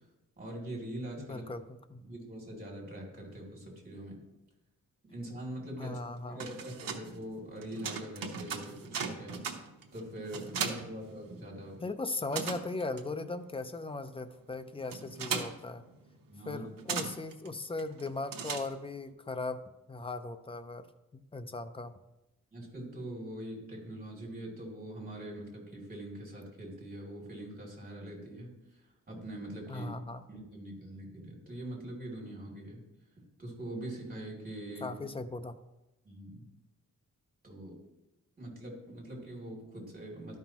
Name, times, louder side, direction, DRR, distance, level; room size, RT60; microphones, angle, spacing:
voice 1, 0.4-1.4 2.1-4.2 5.0-6.0 6.3-9.4 9.9-11.8 16.3-16.7 22.5-29.9 30.3-32.8 33.4-34.9 36.0-36.4 37.4-37.8 38.4-40.4, right 1 dB, 25° right, -2 dB, 2.8 m, -43 dB
voice 2, 1.2-1.6 1.9-2.0 5.8-6.5 11.8-15.8 16.5-19.6 19.9-20.9 21.1-22.0 29.7-30.2 34.8-35.6, left 3 dB, 15° left, 10 dB, 0.4 m, -38 dB
sound 1, 6.2-11.8 12.0-19.1, right 6 dB, 90° right, 0.9 m, -39 dB
12.5 x 5.5 x 2.9 m, 0.96 s
wide cardioid pair, 130°, 33 cm